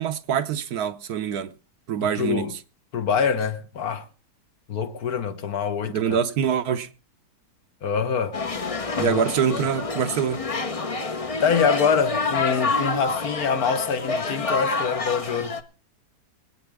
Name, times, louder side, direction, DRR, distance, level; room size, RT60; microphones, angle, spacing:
voice 1, 0.0-1.5 1.9-2.6 5.9-6.9 9.0-10.4, right 8 dB, 65° right, 1.3 m, -25 dB
voice 2, 2.0-2.5 2.9-4.1 4.7-6.2 7.8-8.4 9.0-9.2 9.5-9.6 11.1-15.6, left 6 dB, 65° left, 1.5 m, -25 dB
sound 1, 8.3-15.6, left 3 dB, 30° left, 0.7 m, -28 dB
24.0 x 8.9 x 3.5 m
omnidirectional pair, 1.8 m